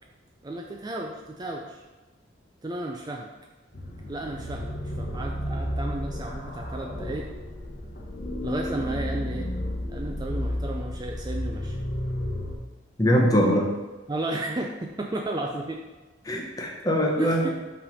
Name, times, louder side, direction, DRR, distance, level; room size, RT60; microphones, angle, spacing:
voice 1, 0.4-1.8 2.6-3.3 4.1-7.3 8.4-9.5 9.9-11.8 14.1-15.8 17.2-17.5, right 2 dB, 20° right, 1 dB, 0.4 m, -33 dB
sound 1, 3.7-12.5, left 1 dB, 50° left, 1.0 m, -32 dB
voice 2, 13.0-13.7 16.2-17.5, equal, 20° left, -1 dB, 0.9 m, -22 dB
5.9 x 3.3 x 5.4 m, 1.2 s
head